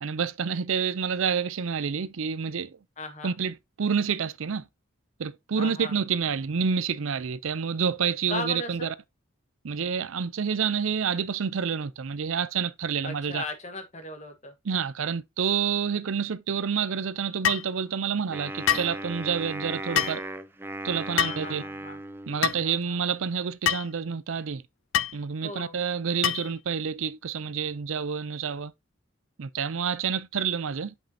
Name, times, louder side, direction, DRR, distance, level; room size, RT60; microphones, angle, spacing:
voice 1, 0.0-2.8 3.2-4.7 5.2-8.9 9.6-13.4 14.6-20.2 20.8-21.6 22.3-24.6 25.1-28.7 29.4-30.9, right 6 dB, 75° right, 0.5 m, -28 dB
voice 2, 3.0-3.3 5.6-5.9 8.3-8.9 13.0-14.5 21.2-22.0 22.6-23.0 25.4-25.8, left 2 dB, 35° left, 1.4 m, -37 dB
sound 1, 17.4-17.7 18.7-18.9 20.0-20.2 21.2-21.5 22.4-22.6 23.7-23.9 24.9-25.2 26.2-26.5, left 10 dB, 70° left, 0.3 m, -25 dB
Wind instrument woodwind instrument, 18.3-22.7, right 1 dB, 10° right, 0.4 m, -37 dB
7.7 x 5.3 x 2.8 m
head